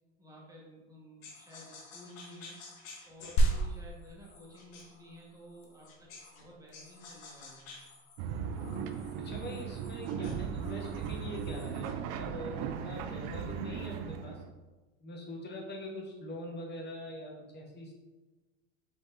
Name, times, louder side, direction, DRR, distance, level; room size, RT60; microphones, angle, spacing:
voice 1, 0.2-2.6 3.0-7.7, equal, 10° right, -4 dB, 1.3 m, -53 dB
sound 1, 1.2-6.4 6.7-12.0, left 4 dB, 80° left, 1.2 m, -53 dB
sound 2, 3.4-13.3, right 1 dB, 60° left, 0.9 m, -37 dB
sound 3, 8.2-14.5, right 7 dB, 45° right, 0.4 m, -37 dB
voice 2, 9.2-14.4 15.0-17.9, left 1 dB, 25° left, 0 dB, 1.1 m, -43 dB
4.8 x 4.3 x 2.6 m, 1.2 s
hypercardioid pair, 105°, 39 cm